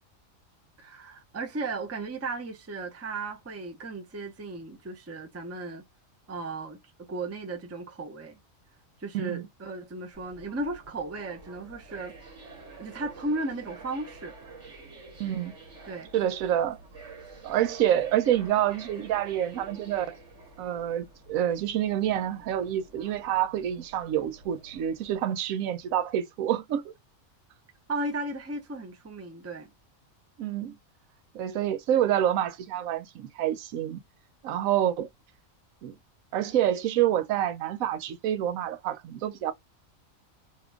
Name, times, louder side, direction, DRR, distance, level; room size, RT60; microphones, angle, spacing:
voice 1, 0.8-5.8 6.3-8.4 9.0-12.1 12.8-14.3 15.8-16.1 27.9-29.7, right 2 dB, 20° right, 0.4 m, -35 dB
voice 2, 9.1-9.5 15.2-15.5 16.1-16.8 17.4-20.2 20.6-26.9 30.4-30.7 31.3-34.0 34.4-35.1 35.8-35.9 36.3-39.5, right 11 dB, 85° right, 1.0 m, -27 dB
sound 1, 10.1-25.2, right 3 dB, 60° right, 1.5 m, -49 dB
2.9 x 2.4 x 3.2 m
omnidirectional pair, 1.4 m